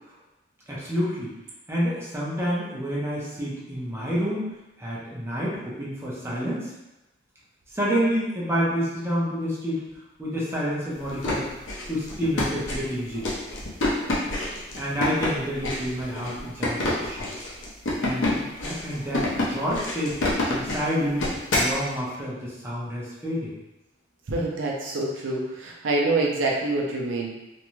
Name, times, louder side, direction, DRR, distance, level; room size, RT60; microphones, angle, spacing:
voice 1, 0.7-1.3 1.7-4.5 4.8-6.7 7.7-9.9 10.2-11.5 11.9-13.3 14.8-17.3 18.0-20.2 20.5-23.5, equal, 15° right, -7 dB, 0.6 m, -28 dB
sound 1, 11.0-21.8, left 2 dB, 70° left, 0.7 m, -28 dB
voice 2, 24.3-27.3, right 2 dB, 75° right, -2 dB, 0.5 m, -26 dB
2.5 x 2.2 x 3.0 m, 1.0 s
head